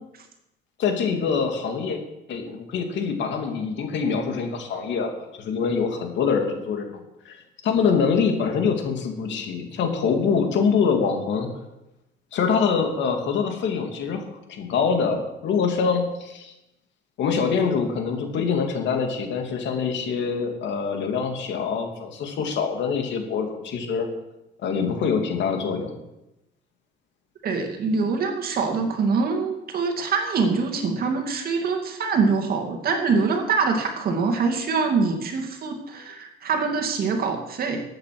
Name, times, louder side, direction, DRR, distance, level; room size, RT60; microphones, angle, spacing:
voice 1, 0.8-2.0 2.3-5.1 5.4-7.4 7.6-11.5 12.3-16.5 17.2-24.1 24.6-25.9, left 5 dB, 65° left, 4 dB, 2.5 m, -24 dB
voice 2, 27.4-37.8, right 4 dB, 50° right, 4 dB, 2.3 m, -24 dB
14.0 x 8.7 x 6.0 m, 0.92 s
cardioid pair, 135°, 20 cm